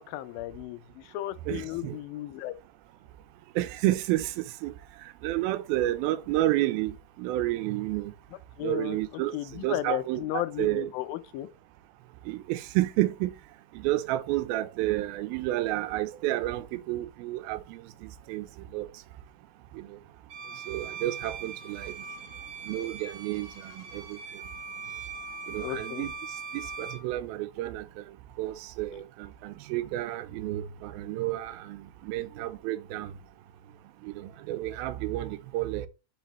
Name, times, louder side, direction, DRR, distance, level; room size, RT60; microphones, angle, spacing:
voice 1, 0.0-2.6 8.6-9.0 9.3-11.5 25.6-26.1, left 15 dB, 85° left, 2.4 m, -34 dB
voice 2, 1.5-2.0 3.6-4.7 5.2-8.1 8.6-10.9 12.3-13.3 13.8-17.8 18.3-18.5 18.7-18.9 19.8-19.9 20.7-21.9 22.7-24.2 25.5-26.1 26.5-27.8 28.4-33.1 34.1-35.9, right 15 dB, 90° right, 2.5 m, -30 dB
Bowed string instrument, 20.3-27.1, right 4 dB, 50° right, 2.2 m, -41 dB
9.2 x 4.8 x 3.0 m
omnidirectional pair, 4.2 m